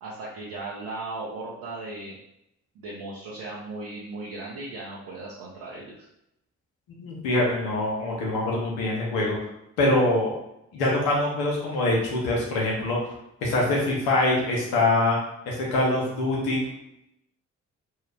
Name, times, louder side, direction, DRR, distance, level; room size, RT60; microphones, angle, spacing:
voice 1, 0.0-2.2 2.7-6.1, right 2 dB, 75° right, -5 dB, 0.7 m, -37 dB
voice 2, 7.0-9.4 9.8-10.3 10.7-13.0 13.4-15.2 15.5-16.6, left 2 dB, 85° left, -3 dB, 0.9 m, -24 dB
3.2 x 2.3 x 3.3 m, 0.81 s
hypercardioid pair, 40°, 36 cm